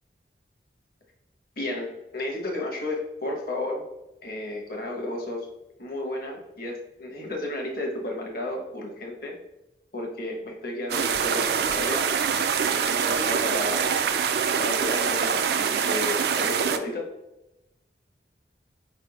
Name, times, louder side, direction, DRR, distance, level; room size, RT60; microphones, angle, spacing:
voice 1, 1.6-3.8 4.2-5.5 5.8-9.3 9.9-13.9 14.6-17.1, left 1 dB, 55° left, 0 dB, 1.0 m, -33 dB
sound 1, 10.9-16.8, right 7 dB, 60° right, 0.3 m, -24 dB
4.4 x 3.4 x 2.8 m, 0.93 s
head